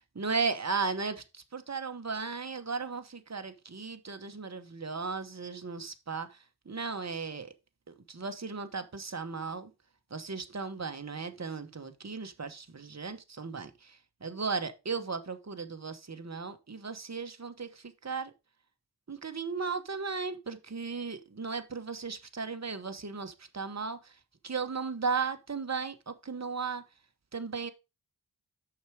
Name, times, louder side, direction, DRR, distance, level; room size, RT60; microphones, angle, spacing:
voice 1, 0.2-1.2 1.5-6.3 6.7-7.5 7.9-9.7 10.1-13.7 14.2-17.7 18.0-18.3 19.1-24.0 24.4-26.8 27.3-27.7, right 4 dB, 40° right, 1.1 m, -35 dB
6.5 x 5.8 x 4.9 m
wide cardioid pair, 45°, 43 cm